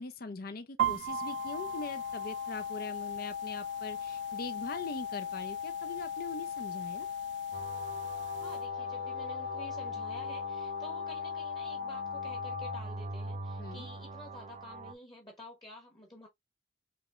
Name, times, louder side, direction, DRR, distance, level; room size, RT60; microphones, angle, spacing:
voice 1, 0.0-7.1 13.6-13.9, left 3 dB, 55° left, 0.6 m, -42 dB
sound 1, 0.8-8.6, right 11 dB, 85° right, 0.5 m, -41 dB
sound 2, 1.1-12.8, left 8 dB, 80° left, 1.2 m, -38 dB
sound 3, 7.5-14.9, right 2 dB, 40° right, 0.7 m, -43 dB
voice 2, 8.3-16.3, left 1 dB, 25° left, 1.1 m, -51 dB
5.2 x 3.0 x 2.5 m
head